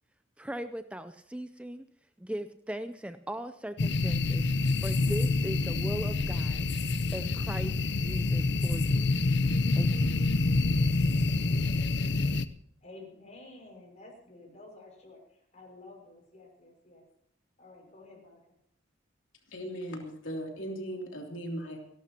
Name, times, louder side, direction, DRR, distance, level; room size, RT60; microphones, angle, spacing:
voice 1, 0.4-1.8 2.2-4.5 4.8-9.1 9.8-10.1, right 1 dB, 5° right, 9 dB, 0.5 m, -39 dB
sound 1, 3.8-12.5, left 3 dB, 60° left, 0.7 m, -27 dB
voice 2, 12.8-17.1 17.6-18.4, left 2 dB, 35° left, 0 dB, 5.9 m, -51 dB
voice 3, 19.5-21.8, equal, 80° left, 1 dB, 3.0 m, -38 dB
28.5 x 12.0 x 2.9 m, 0.71 s
head